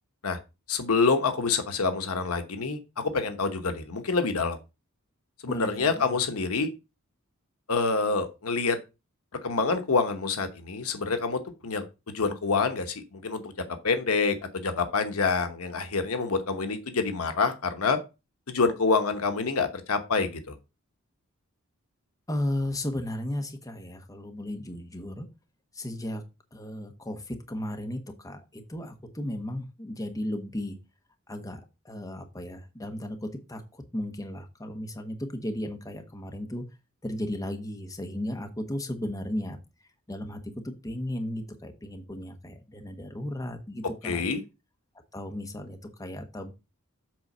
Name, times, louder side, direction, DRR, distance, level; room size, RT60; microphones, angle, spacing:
voice 1, 0.7-4.6 5.4-6.7 7.7-8.8 9.4-18.0 18.5-20.5 44.0-44.4, left 4 dB, 75° left, 8 dB, 1.0 m, -27 dB
voice 2, 5.5-6.2 22.3-25.3 25.7-26.2 26.5-30.8 31.3-36.6 37.0-39.6 40.1-44.2 45.1-46.5, left 1 dB, 15° left, 5 dB, 1.0 m, -35 dB
7.8 x 3.9 x 5.4 m, 0.27 s
head